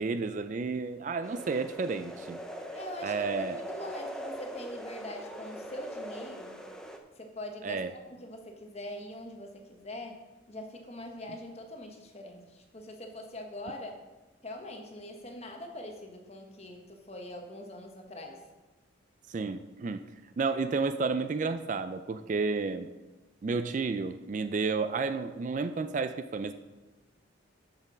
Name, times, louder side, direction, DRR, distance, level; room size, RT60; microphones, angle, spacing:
voice 1, 0.0-2.4 3.0-3.6 7.6-7.9 19.3-20.0 20.4-22.9 23.4-26.5, right 4 dB, 40° right, 11 dB, 0.3 m, -31 dB
sound 1, 1.2-7.0, equal, 5° left, 0.6 m, -41 dB
voice 2, 2.7-6.6 7.2-10.2 10.5-14.0 14.4-18.4, left 1 dB, 30° left, 3 dB, 1.1 m, -43 dB
7.0 x 6.7 x 6.0 m, 1.1 s
head